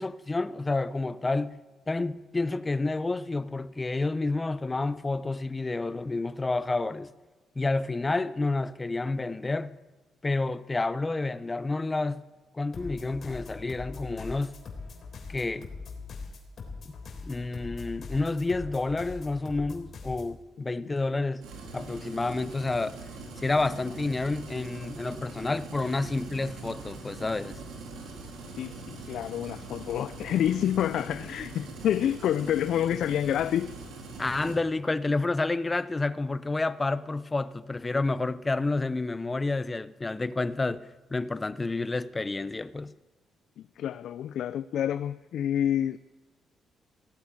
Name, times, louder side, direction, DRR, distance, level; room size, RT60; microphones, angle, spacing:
voice 1, 0.0-1.6 1.9-7.1 7.5-9.8 10.2-12.2 12.5-14.6 15.3-15.7 17.3-21.5 21.7-23.0 23.4-27.6 34.2-42.9, left 3 dB, 20° left, 0.7 m, -29 dB
sound 1, 12.7-20.4, left 4 dB, 50° left, 3.8 m, -42 dB
sound 2, 21.4-34.6, right 3 dB, 85° right, 4.0 m, -42 dB
voice 2, 28.6-33.7 43.6-46.0, left 10 dB, 70° left, 0.4 m, -28 dB
17.0 x 8.5 x 9.6 m
cardioid pair, 90°, 0 cm